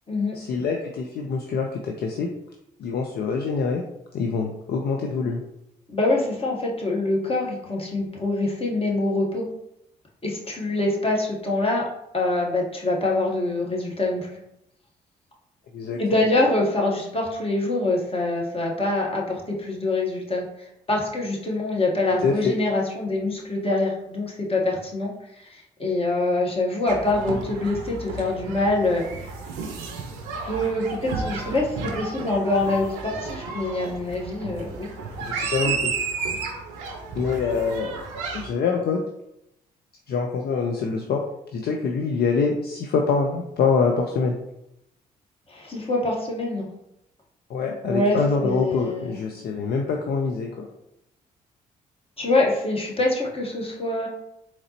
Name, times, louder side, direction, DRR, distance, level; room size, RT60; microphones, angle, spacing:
voice 1, 0.3-2.3 2.8-3.8 4.1-5.4 15.7-16.0 22.2-22.5 35.3-35.9 37.1-38.0 38.3-39.0 40.1-41.2 41.5-44.4 47.5-50.7, left 5 dB, 50° left, 2 dB, 0.5 m, -25 dB
voice 2, 5.9-9.5 10.2-11.9 12.1-14.3 16.0-29.3 30.4-34.9 35.3-35.5 45.5-46.6 47.8-49.2 52.2-54.1, left 2 dB, 25° left, -2 dB, 1.2 m, -25 dB
sound 1, 26.9-38.5, right 4 dB, 75° right, 0.5 m, -32 dB
3.8 x 3.0 x 2.9 m, 0.83 s
hypercardioid pair, 40°, 21 cm